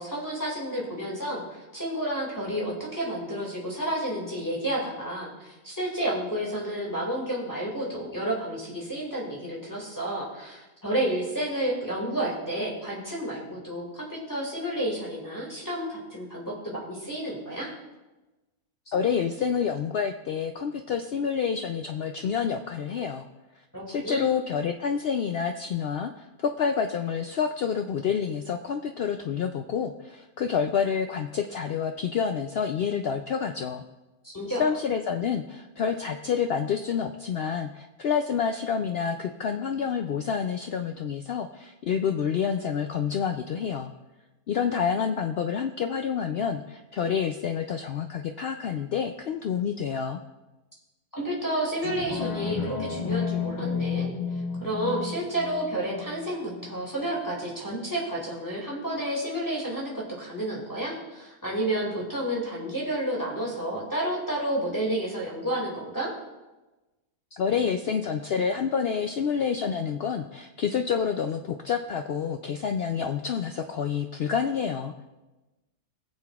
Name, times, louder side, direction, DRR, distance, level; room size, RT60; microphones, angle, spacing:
voice 1, 0.0-1.4 1.7-17.7 23.7-24.3 34.2-34.6 51.1-54.1 54.6-66.1, right 1 dB, 15° left, -4 dB, 2.2 m, -31 dB
voice 2, 18.9-23.3 23.9-33.8 34.5-43.9 44.5-50.2 67.3-75.0, left 7 dB, 75° left, 5 dB, 0.5 m, -28 dB
sound 1, 51.8-56.9 57.3-57.4, left 5 dB, 35° left, 0.9 m, -32 dB
18.5 x 7.7 x 2.4 m, 1.1 s
omnidirectional pair, 1.5 m